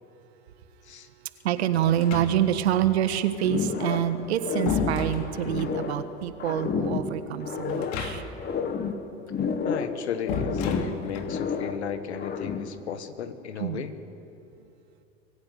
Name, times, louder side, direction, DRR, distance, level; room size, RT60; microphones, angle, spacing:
voice 1, 1.4-8.2 13.6-13.8, right 11 dB, 75° right, 10 dB, 1.6 m, -26 dB
sound 1, 1.9-2.7 4.0-5.8 7.7-8.5 8.8-8.9 10.3-11.4, left 4 dB, 60° left, 2.8 m, -33 dB
sound 2, 3.4-4.1 4.4-6.1 6.4-8.1 8.4-10.0 10.3-11.8 12.1-12.8, left 6 dB, 30° left, 1.9 m, -30 dB
voice 2, 9.6-13.9, left 8 dB, 80° left, 10 dB, 1.6 m, -35 dB
24.5 x 15.0 x 9.4 m, 2.8 s
hypercardioid pair, 90°, 33 cm